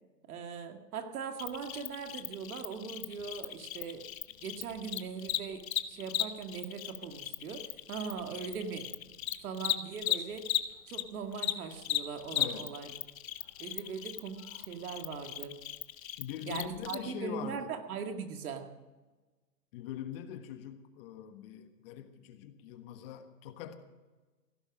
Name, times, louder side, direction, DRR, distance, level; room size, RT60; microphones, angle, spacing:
voice 1, 0.3-4.1 4.4-8.9 9.4-10.5 10.9-12.9 13.6-15.6 16.5-18.7, right 6 dB, 60° right, 6 dB, 2.1 m, -40 dB
Cricket, 1.4-11.0 11.3-16.9, left 12 dB, 55° left, 1.1 m, -36 dB
voice 2, 12.3-12.7 16.2-17.7 19.7-23.7, left 10 dB, 35° left, 8 dB, 1.4 m, -43 dB
17.0 x 11.0 x 6.2 m, 1.2 s
hypercardioid pair, 135°, 48 cm